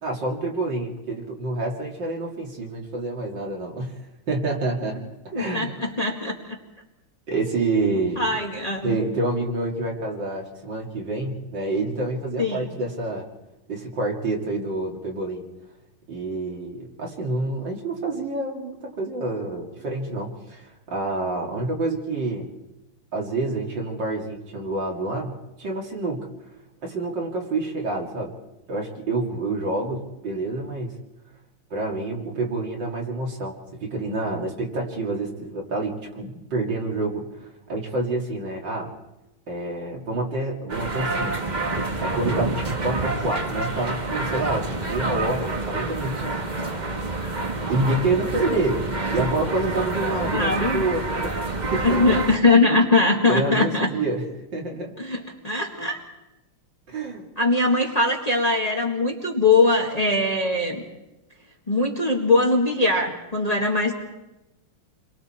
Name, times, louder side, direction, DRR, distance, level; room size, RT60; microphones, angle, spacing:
voice 1, 0.0-3.9 4.3-5.1 5.3-5.7 7.3-8.3 8.8-13.3 13.7-15.4 16.1-22.5 23.1-26.3 26.8-28.3 28.7-31.0 31.7-38.9 39.5-41.5 42.0-47.0 47.5-52.2 53.3-54.9 56.9-57.3, right 2 dB, 60° right, -1 dB, 3.1 m, -28 dB
voice 2, 5.3-6.6 8.2-9.0 12.4-12.7 50.2-50.9 51.8-53.9 55.0-56.0 57.4-60.8 61.7-63.9, left 2 dB, 20° left, -1 dB, 1.8 m, -21 dB
sound 1, 40.7-52.4, right 2 dB, 25° right, 1.2 m, -28 dB
29.0 x 23.0 x 4.4 m, 0.97 s
omnidirectional pair, 2.3 m